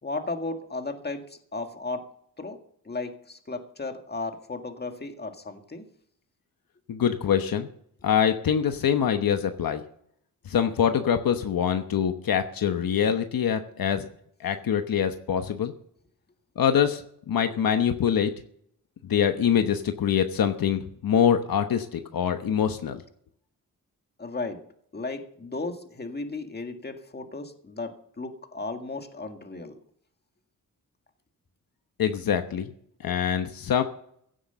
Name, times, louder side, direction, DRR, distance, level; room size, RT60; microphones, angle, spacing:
voice 1, 0.0-2.0 2.4-5.9 24.2-24.6 24.9-29.7, left 3 dB, 25° left, 5 dB, 1.9 m, -35 dB
voice 2, 6.9-7.7 8.0-9.8 10.5-14.0 14.4-15.7 16.6-17.0 17.3-18.3 19.1-23.0 32.0-32.7 33.0-33.8, left 8 dB, 70° left, 7 dB, 1.1 m, -24 dB
16.0 x 7.9 x 6.8 m, 0.67 s
cardioid pair, 95°, 36 cm